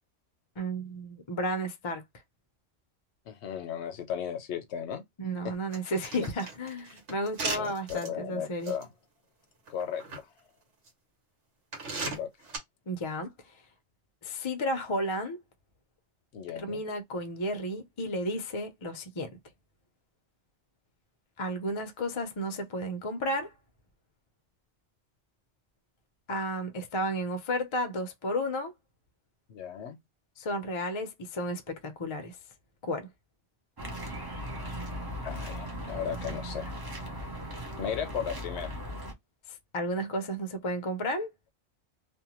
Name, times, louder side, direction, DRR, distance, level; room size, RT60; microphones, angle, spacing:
voice 1, 0.6-2.0 5.2-8.7 12.9-13.3 14.2-15.4 16.6-19.3 21.4-23.5 26.3-28.7 30.4-32.4 32.8-33.1 39.5-41.3, equal, 40° left, 0.4 m, -33 dB
voice 2, 3.3-5.0 5.4-5.5 7.5-8.9 9.7-10.0 12.0-12.3 16.3-16.8 29.5-30.0 35.2-36.8 37.8-38.7, left 8 dB, 70° left, 0.9 m, -35 dB
sound 1, 5.7-8.1 8.6-8.8 9.7-10.2 10.9-11.0 11.7-12.6, right 3 dB, 85° right, 1.3 m, -36 dB
sound 2, 33.8-39.1, equal, 30° right, 0.5 m, -38 dB
2.6 x 2.1 x 2.8 m
omnidirectional pair, 1.2 m